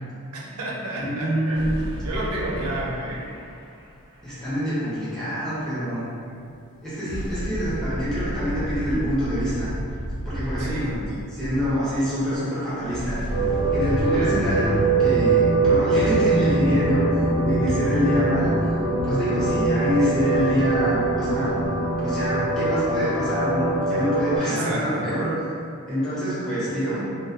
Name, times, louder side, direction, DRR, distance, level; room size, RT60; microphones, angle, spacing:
voice 1, 0.3-1.8 2.0-3.2 10.6-10.9 14.1-14.4 24.4-25.1, right 1 dB, 80° right, -4 dB, 0.5 m, -31 dB
voice 2, 1.0-1.9 4.2-6.1 6.8-9.7 10.2-10.9 11.3-13.2 13.7-17.0 17.4-18.5 19.0-21.5 22.0-25.3 25.9-27.0, equal, ahead, -14 dB, 0.7 m, -26 dB
sound 1, 1.5-4.5 7.0-12.4 12.7-14.9, equal, 20° right, 0.4 m, -33 dB
sound 2, 13.3-24.4, right 2 dB, 65° left, 1.1 m, -22 dB
2.3 x 2.2 x 2.5 m, 2.5 s
head